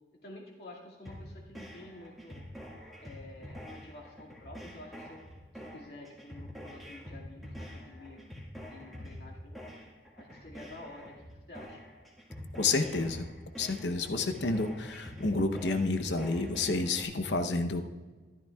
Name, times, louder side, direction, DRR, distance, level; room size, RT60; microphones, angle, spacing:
voice 1, 0.2-2.5 3.0-5.2 5.5-8.2 8.6-9.6 10.2-11.8, left 2 dB, 65° left, -2 dB, 2.1 m, -50 dB
sound 1, 1.0-17.0, equal, ahead, 1.7 m, -46 dB
voice 2, 12.6-13.3 13.6-17.8, left 3 dB, 80° left, 7 dB, 0.8 m, -30 dB
13.5 x 12.0 x 2.3 m, 1.4 s
head